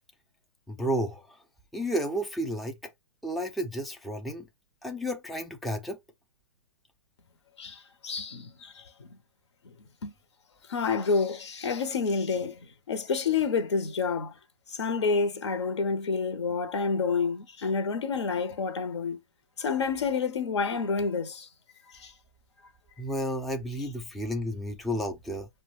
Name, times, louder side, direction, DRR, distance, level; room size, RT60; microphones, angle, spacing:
voice 1, 0.7-1.4 1.7-2.9 3.2-4.5 4.8-6.0 23.0-25.5, equal, ahead, 0.4 m, -32 dB
voice 2, 7.6-8.8 10.0-10.1 10.7-12.6 12.9-14.3 14.7-19.2 19.6-21.5 22.0-22.1, left 5 dB, 65° left, 0.8 m, -28 dB
5.1 x 2.2 x 3.1 m
hypercardioid pair, 125°, 15 cm